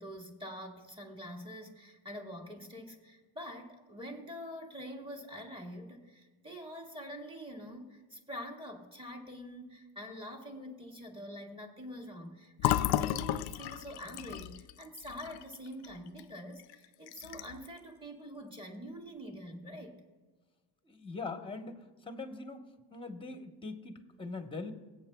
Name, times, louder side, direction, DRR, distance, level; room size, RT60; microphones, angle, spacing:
voice 1, 0.0-20.0, equal, 10° right, 1 dB, 1.9 m, -45 dB
Fill (with liquid), 12.6-16.3 16.6-16.7 17.1-17.7, left 13 dB, 60° left, 0.5 m, -33 dB
voice 2, 20.9-22.6 22.9-24.7, left 3 dB, 10° left, 6 dB, 1.1 m, -42 dB
23.0 x 8.6 x 2.3 m, 1.3 s
cardioid pair, 115°, 44 cm